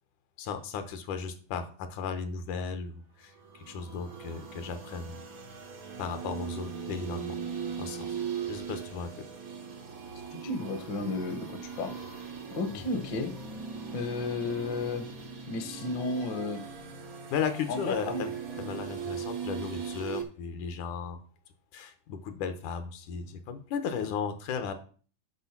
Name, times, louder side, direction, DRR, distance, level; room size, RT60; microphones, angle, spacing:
voice 1, 0.4-5.2 6.0-7.4 7.8-8.2 8.5-9.1 12.7-12.8 17.3-21.2 21.7-24.7, left 6 dB, 75° left, 9 dB, 2.3 m, -35 dB
sound 1, 3.3-20.2, right 6 dB, 85° right, 0.7 m, -39 dB
voice 2, 10.3-12.1 12.5-13.3 13.9-15.1 15.5-16.6 17.7-18.2, left 3 dB, 55° left, 7 dB, 1.2 m, -33 dB
8.3 x 6.1 x 5.9 m, 0.41 s
omnidirectional pair, 3.8 m